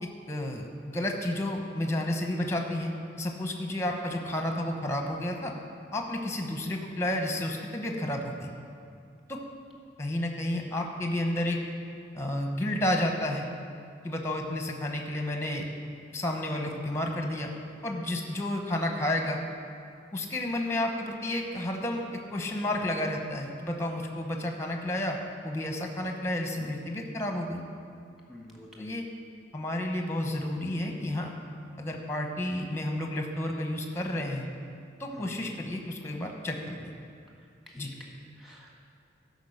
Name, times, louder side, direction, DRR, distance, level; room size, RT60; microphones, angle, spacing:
voice 1, 0.0-5.5 5.9-8.5 9.3-9.4 10.0-11.6 12.1-13.4 14.0-15.7 16.1-17.5 17.8-19.4 20.1-22.0 22.3-25.2 25.4-27.6 28.8-29.0 29.5-31.3 31.8-34.5 35.0-36.9 37.8-37.9, left 1 dB, 15° left, 3 dB, 0.9 m, -31 dB
voice 2, 28.3-28.9 35.1-35.3 37.7-38.7, left 1 dB, ahead, -2 dB, 1.4 m, -49 dB
12.5 x 5.2 x 6.5 m, 2.3 s
head